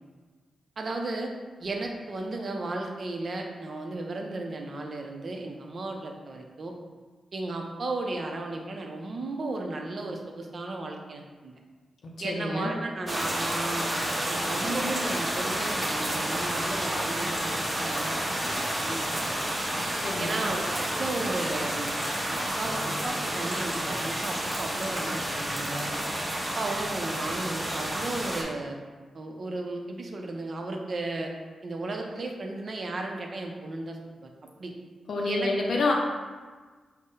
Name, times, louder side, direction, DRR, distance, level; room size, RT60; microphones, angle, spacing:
voice 1, 0.8-1.3 1.6-6.8 7.3-11.5 12.2-13.9 14.3-18.2 18.6-19.5 20.2-21.9 22.3-25.9 26.3-28.8 29.1-31.3 31.6-34.3 34.6-34.7 35.2-35.5 35.8-35.9, right 2 dB, 55° right, 2 dB, 0.5 m, -34 dB
voice 2, 12.0-12.7 19.8-20.4 35.1-35.9, left 3 dB, 70° left, -1 dB, 0.4 m, -29 dB
sound 1, 13.1-28.4, right 1 dB, 25° right, 0.8 m, -30 dB
3.9 x 2.0 x 3.7 m, 1.4 s
cardioid pair, 55°, 0 cm